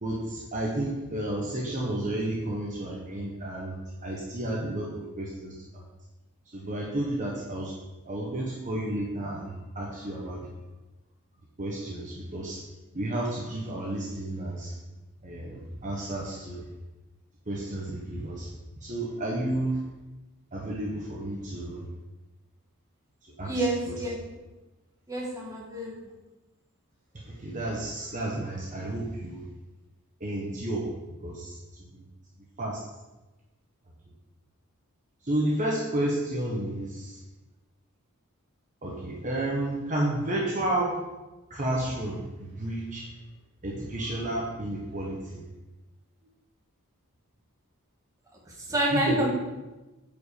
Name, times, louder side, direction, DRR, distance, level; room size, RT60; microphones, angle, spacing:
voice 1, 0.0-5.8 6.5-7.7 8.1-10.5 11.6-12.6 12.9-14.7 15.2-16.6 17.5-18.5 18.8-19.8 20.5-21.8 23.4-23.6 27.1-29.4 30.2-30.9 31.2-31.6 31.9-32.0 32.6-32.8 35.2-37.2 38.8-41.0 41.5-43.1 43.6-45.4 48.9-49.2, right 1 dB, 35° right, -3 dB, 1.2 m, -31 dB
voice 2, 23.4-24.2 25.1-26.1 48.7-49.3, right 1 dB, 15° right, -3 dB, 1.9 m, -28 dB
9.1 x 5.3 x 5.0 m, 1.1 s
head